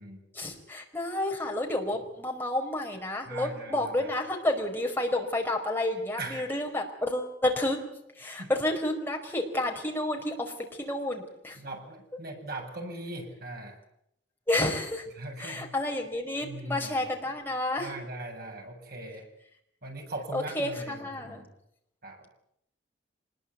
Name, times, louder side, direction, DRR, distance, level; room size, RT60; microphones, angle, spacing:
voice 1, 0.3-7.8 8.2-11.6 14.5-15.1 15.4-17.9 20.3-21.4, left 1 dB, 10° left, 1 dB, 5.1 m, -30 dB
voice 2, 3.3-3.9 6.2-6.5 8.2-8.5 11.6-13.8 15.2-15.7 16.4-17.1 17.8-19.3 19.8-21.5 22.0-22.2, right 2 dB, 55° right, 2 dB, 7.4 m, -40 dB
25.5 x 21.0 x 8.4 m, 0.75 s
head